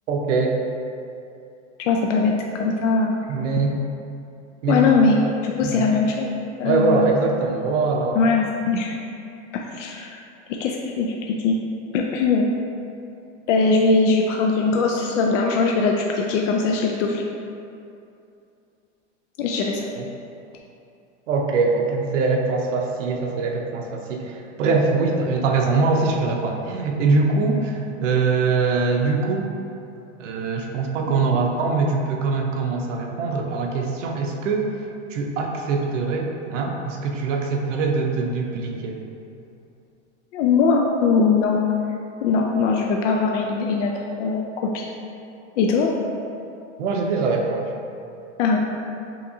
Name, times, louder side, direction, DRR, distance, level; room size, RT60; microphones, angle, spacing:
voice 1, 0.1-0.6 3.3-3.8 4.6-4.9 5.6-5.9 6.6-8.3 20.0-20.1 21.3-29.5 30.2-34.7 35.1-39.0 46.8-47.7, right 4 dB, 90° right, 1 dB, 0.7 m, -23 dB
voice 2, 1.9-3.2 4.7-6.3 6.6-7.1 8.2-8.9 9.5-10.2 10.5-11.6 11.9-12.5 13.5-17.2 19.4-19.9 40.3-41.6 42.2-44.8 45.6-45.9 48.4-48.6, left 4 dB, 90° left, 0 dB, 0.5 m, -21 dB
5.7 x 2.9 x 2.7 m, 2.7 s
supercardioid pair, 180°, 36 cm